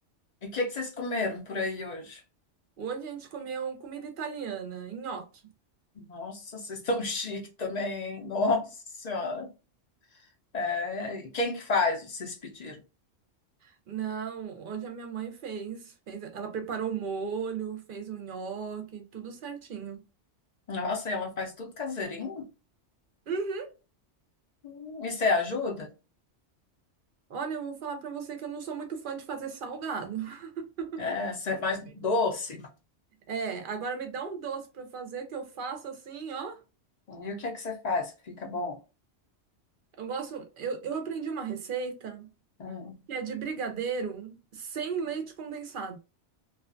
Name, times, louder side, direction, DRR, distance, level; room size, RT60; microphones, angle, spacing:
voice 1, 0.4-2.2 6.1-8.7 9.0-9.5 10.5-12.8 20.7-22.5 24.6-25.9 31.0-32.6 37.1-38.8 42.6-43.0, left 3 dB, 45° left, 0.6 m, -31 dB
voice 2, 2.8-5.3 13.6-20.0 23.3-23.7 27.3-31.0 33.3-36.6 40.0-42.3 43.1-46.0, right 6 dB, 55° right, 0.7 m, -35 dB
2.4 x 2.3 x 2.4 m
omnidirectional pair, 1.2 m